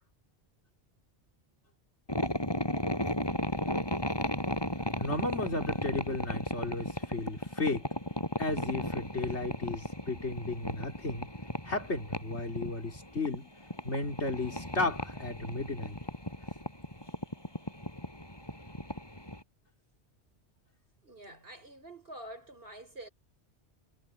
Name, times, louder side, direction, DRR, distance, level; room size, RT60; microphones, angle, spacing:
sound 1, 2.1-19.4, left 1 dB, 20° left, 6.0 m, -35 dB
voice 1, 5.0-7.9 8.4-11.3 11.7-13.5 13.8-16.0, left 2 dB, 80° left, 4.1 m, -34 dB
voice 2, 21.0-23.1, right 1 dB, 55° right, 6.2 m, -47 dB
omnidirectional pair, 1.2 m